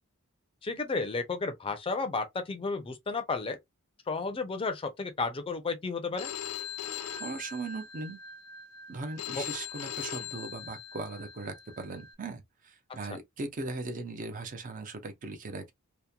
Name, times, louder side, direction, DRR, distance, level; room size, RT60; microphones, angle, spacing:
voice 1, 0.6-3.6 4.1-6.3 9.4-9.5, left 4 dB, 25° left, 0.4 m, -32 dB
Telephone, 6.2-12.1, left 9 dB, 80° left, 0.4 m, -40 dB
voice 2, 7.2-8.2 8.9-15.7, right 3 dB, 40° right, 0.5 m, -39 dB
2.8 x 2.1 x 2.2 m
head